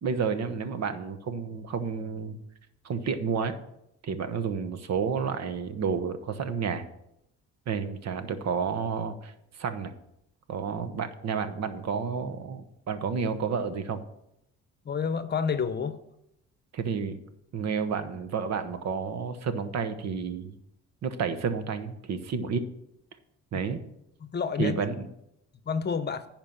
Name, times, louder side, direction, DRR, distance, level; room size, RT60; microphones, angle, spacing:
voice 1, 0.0-2.4 2.8-3.5 4.0-6.8 7.7-9.9 10.5-14.0 16.7-17.2 17.5-20.5 21.0-22.7 23.5-23.8 24.6-25.1, right 6 dB, 60° right, 10 dB, 1.0 m, -30 dB
voice 2, 14.8-16.0 24.2-24.8 25.7-26.3, left 6 dB, 35° left, 12 dB, 0.8 m, -29 dB
10.5 x 4.6 x 7.2 m, 0.81 s
cardioid pair, 90°, 30 cm